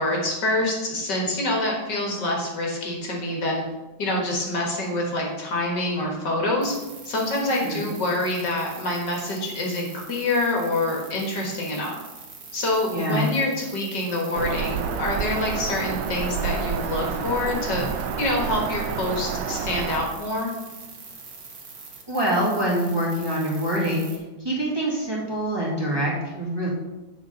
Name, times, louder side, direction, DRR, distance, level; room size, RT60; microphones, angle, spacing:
voice 1, 0.0-3.6 4.0-6.7 7.1-11.9 12.5-17.8 18.2-20.6, left 2 dB, 65° left, -1 dB, 2.2 m, -26 dB
sound 1, 6.6-24.2, right 4 dB, 55° right, 1.8 m, -43 dB
voice 2, 12.9-13.3 22.1-24.0 24.4-26.7, right 1 dB, 15° right, -6 dB, 2.1 m, -25 dB
Bird vocalization bird call bird song, 14.3-20.1, right 6 dB, 75° right, 1.2 m, -29 dB
8.3 x 5.0 x 5.2 m, 1.1 s
omnidirectional pair, 2.1 m